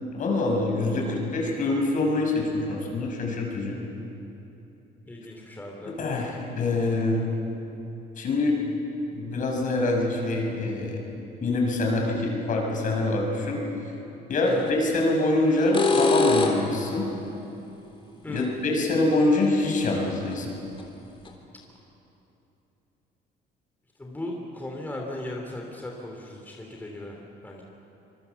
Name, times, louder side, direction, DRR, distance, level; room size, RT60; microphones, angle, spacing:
voice 1, 0.1-3.8 6.0-7.2 8.2-8.6 9.1-11.0 11.4-13.6 14.3-17.1 18.3-20.6, left 2 dB, 50° left, 0 dB, 6.1 m, -25 dB
voice 2, 5.1-5.9 14.4-14.6 18.2-18.6 24.0-27.6, left 1 dB, 10° left, 0 dB, 3.1 m, -37 dB
sound 1, 14.5-14.7 15.5-16.8 19.5-19.6 20.3-20.4 20.8-20.9 21.2-21.3, left 3 dB, 30° left, 3.4 m, -23 dB
25.5 x 23.0 x 7.1 m, 2.9 s
cardioid pair, 110°, 17 cm